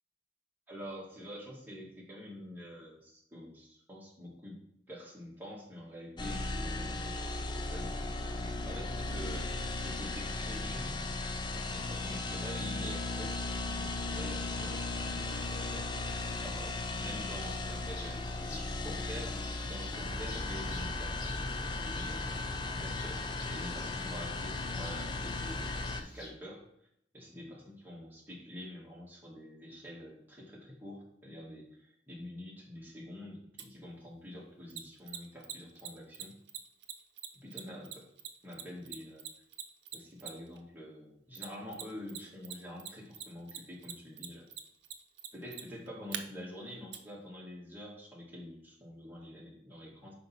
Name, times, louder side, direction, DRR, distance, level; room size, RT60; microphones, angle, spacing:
voice 1, 0.7-4.6 4.9-11.0 11.6-16.2 16.4-26.6 27.1-36.3 37.4-38.1 38.4-39.3 39.9-44.5 45.3-50.1, equal, 10° right, -4 dB, 1.8 m, -47 dB
sound 1, 6.2-26.0, left 2 dB, 25° left, 0.5 m, -36 dB
sound 2, 17.4-26.3, left 2 dB, 45° left, 2.6 m, -53 dB
Mechanisms, 33.6-33.7 34.7-40.6 41.3-42.2 42.4-46.2 46.9-47.0, right 10 dB, 75° right, 0.6 m, -42 dB
5.3 x 4.2 x 5.7 m, 0.73 s
head